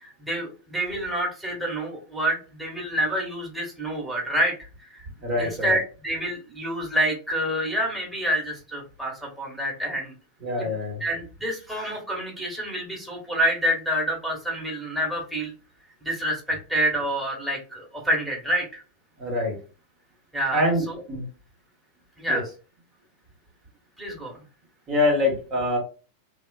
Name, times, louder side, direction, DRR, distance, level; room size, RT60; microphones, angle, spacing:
voice 1, 0.0-5.1 5.4-10.1 11.0-15.5 16.0-18.8 20.3-21.0 22.2-22.4 24.0-24.4, equal, ahead, -1 dB, 1.3 m, -28 dB
voice 2, 5.2-5.7 10.4-11.0 19.2-19.6 20.5-21.2 22.3-22.4 24.9-25.8, left 1 dB, 30° right, -1 dB, 1.1 m, -25 dB
3.2 x 2.4 x 2.3 m, 0.34 s
figure-of-eight pair, 90°, 0 cm